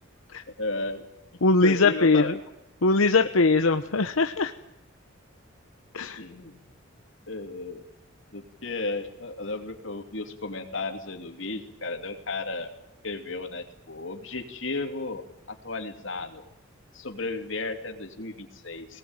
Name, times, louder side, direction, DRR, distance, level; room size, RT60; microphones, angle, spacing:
voice 1, 0.6-1.1 1.6-2.3 6.2-6.6 7.3-7.8 8.3-12.7 13.0-16.4 16.9-19.0, left 3 dB, 65° left, 4 dB, 3.0 m, -34 dB
voice 2, 1.4-2.4 2.8-4.5 5.9-6.2, left 3 dB, 85° left, 7 dB, 1.0 m, -21 dB
21.5 x 19.0 x 9.0 m, 0.92 s
head